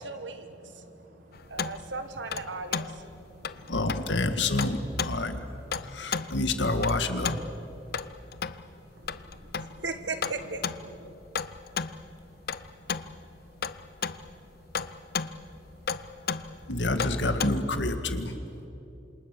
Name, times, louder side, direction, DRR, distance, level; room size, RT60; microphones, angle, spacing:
voice 1, 0.0-3.8 8.9-11.1, right 3 dB, 85° right, 8 dB, 1.7 m, -39 dB
sound 1, 1.3-17.7, left 6 dB, 55° left, 0.7 m, -35 dB
voice 2, 3.7-5.4 5.8-7.4 16.7-18.3, left 2 dB, 80° left, 8 dB, 1.9 m, -28 dB
voice 3, 5.9-6.4 8.0-9.8 11.1-16.7, equal, 45° right, 1 dB, 4.4 m, -57 dB
27.5 x 27.0 x 6.8 m, 2.9 s
head